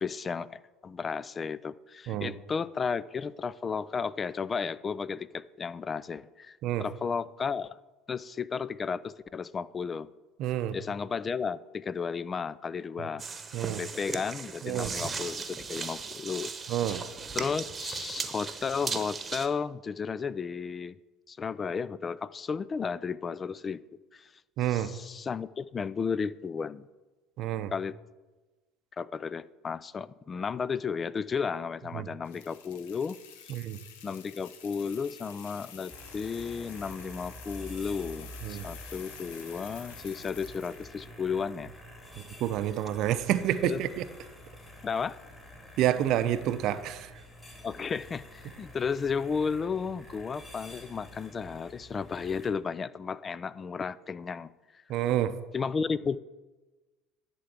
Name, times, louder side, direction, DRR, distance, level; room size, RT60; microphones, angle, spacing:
voice 1, 0.0-7.8 8.1-10.1 10.7-13.3 13.8-16.5 17.3-21.0 21.3-23.8 24.1-24.3 24.6-26.9 27.7-27.9 29.0-33.2 33.4-33.5 34.0-41.7 43.6-43.8 44.8-45.2 47.6-54.5 55.1-55.2 55.5-56.2, left 5 dB, 30° left, 0.3 m, -33 dB
voice 2, 10.4-10.7 13.5-13.8 14.6-14.9 16.7-17.0 24.6-24.9 27.4-27.7 31.9-32.1 33.5-33.8 38.4-38.6 42.4-44.0 45.8-47.1 54.9-55.3, right 12 dB, 60° right, 0.6 m, -28 dB
sound 1, 13.2-19.5, right 5 dB, 30° right, 1.0 m, -37 dB
sound 2, 32.2-41.0, left 8 dB, 75° left, 0.9 m, -49 dB
sound 3, 35.9-52.5, equal, 15° left, 3.0 m, -48 dB
11.0 x 3.8 x 7.4 m
hypercardioid pair, 70°, 0 cm